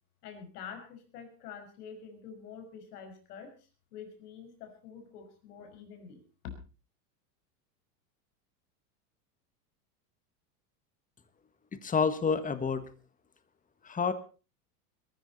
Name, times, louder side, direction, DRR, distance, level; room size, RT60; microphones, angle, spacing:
voice 1, 0.2-3.5 3.9-6.2, left 7 dB, 75° left, 6 dB, 5.9 m, -47 dB
voice 2, 11.7-12.8 13.8-14.1, left 5 dB, 15° left, 12 dB, 1.6 m, -28 dB
21.5 x 13.5 x 4.2 m, 0.35 s
hypercardioid pair, 105°, 47 cm